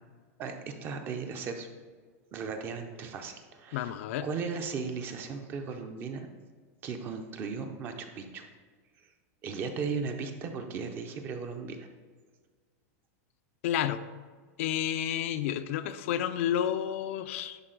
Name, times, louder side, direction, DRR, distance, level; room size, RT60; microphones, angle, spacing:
voice 1, 0.4-1.7 2.3-3.9 4.2-6.3 6.8-8.5 9.4-11.9, right 5 dB, 25° right, 6 dB, 0.6 m, -36 dB
voice 2, 3.7-4.3 13.6-14.0 14.6-17.6, left 10 dB, 55° left, 10 dB, 0.4 m, -30 dB
10.5 x 4.0 x 3.9 m, 1.5 s
supercardioid pair, 170°, 9 cm